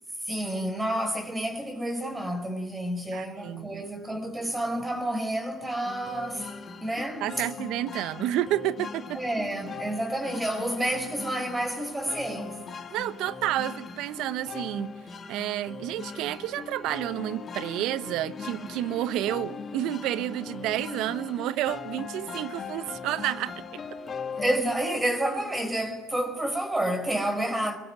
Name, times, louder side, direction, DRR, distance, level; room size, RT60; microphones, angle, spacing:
voice 1, 0.2-7.5 9.1-12.6 24.4-27.8, right 1 dB, 10° right, 4.8 m, -29 dB
voice 2, 3.1-3.9 7.2-9.2 12.9-14.9 15.3-23.8, right 13 dB, 60° right, 1.0 m, -30 dB
sound 1, 5.8-24.6, left 5 dB, 30° left, 2.3 m, -40 dB
22.5 x 21.0 x 9.8 m
hypercardioid pair, 80°, 0 cm